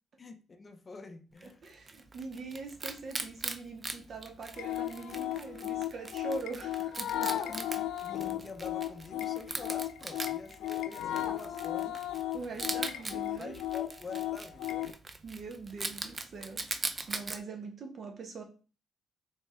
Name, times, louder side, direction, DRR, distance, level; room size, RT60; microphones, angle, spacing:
voice 1, 0.2-1.6 7.2-12.0 13.4-14.9, left 3 dB, 35° left, 0.5 m, -47 dB
Wild animals, 1.4-17.4, right 3 dB, 30° right, 0.4 m, -41 dB
voice 2, 1.4-7.3 12.3-13.6 15.2-18.4, right 4 dB, 50° right, 1.0 m, -43 dB
sound 1, 4.5-14.9, left 13 dB, 85° left, 0.3 m, -35 dB
3.5 x 3.2 x 3.2 m
cardioid pair, 90°, 0 cm